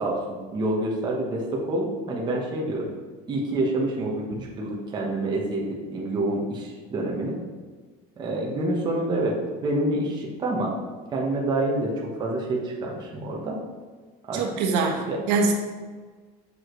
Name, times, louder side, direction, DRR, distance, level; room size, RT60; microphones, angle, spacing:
voice 1, 0.0-2.9 3.3-5.6 5.9-7.3 8.2-9.4 9.6-10.7 11.1-13.6 14.3-14.4 15.1-15.2, right 1 dB, 20° right, -3 dB, 1.1 m, -27 dB
voice 2, 14.3-15.5, right 4 dB, 65° right, 1 dB, 1.2 m, -24 dB
7.4 x 6.2 x 3.2 m, 1.4 s
cardioid pair, 170°, 19 cm